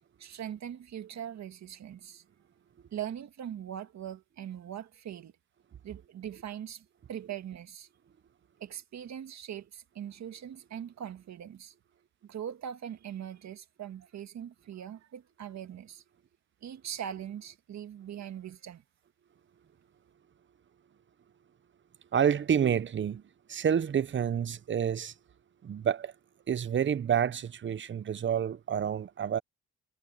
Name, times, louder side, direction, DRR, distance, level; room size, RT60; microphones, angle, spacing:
voice 1, 0.2-2.2 2.9-5.3 5.8-7.9 8.6-11.7 12.2-16.0 16.6-18.8, right 9 dB, 65° right, 1.9 m, -41 dB
voice 2, 22.1-23.2 23.5-25.1 25.6-26.1 26.5-29.4, right 8 dB, 40° right, 0.8 m, -28 dB
cardioid pair, 90°, 30 cm